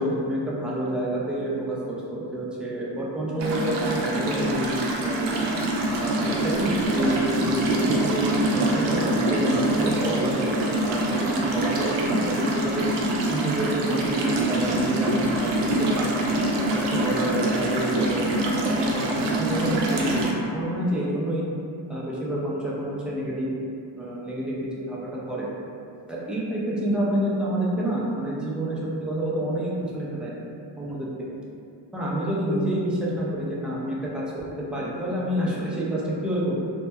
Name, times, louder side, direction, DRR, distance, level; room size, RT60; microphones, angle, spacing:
voice 1, 0.0-5.3 6.0-12.9 13.3-15.5 15.8-16.2 16.6-20.2 20.5-21.5 21.9-23.5 23.9-25.5 26.1-30.3 30.8-31.3 31.9-34.2 34.7-36.6, right 1 dB, ahead, -6 dB, 0.4 m, -28 dB
sound 1, 3.4-20.3, right 1 dB, 65° right, 0.5 m, -25 dB
2.7 x 2.1 x 2.2 m, 2.5 s
cardioid pair, 85°, 46 cm